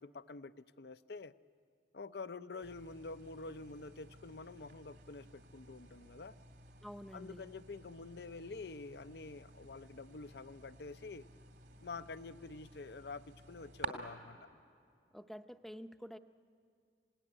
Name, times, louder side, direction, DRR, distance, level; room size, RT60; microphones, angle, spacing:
voice 1, 0.0-1.3 1.9-6.4 7.1-11.3 11.8-14.5, left 3 dB, 65° left, 13 dB, 0.6 m, -47 dB
sound 1, 2.6-13.9, right 3 dB, 70° right, 2.6 m, -52 dB
voice 2, 6.8-7.5 15.1-16.2, equal, ahead, 8 dB, 0.6 m, -49 dB
27.0 x 18.5 x 9.8 m, 2.4 s
head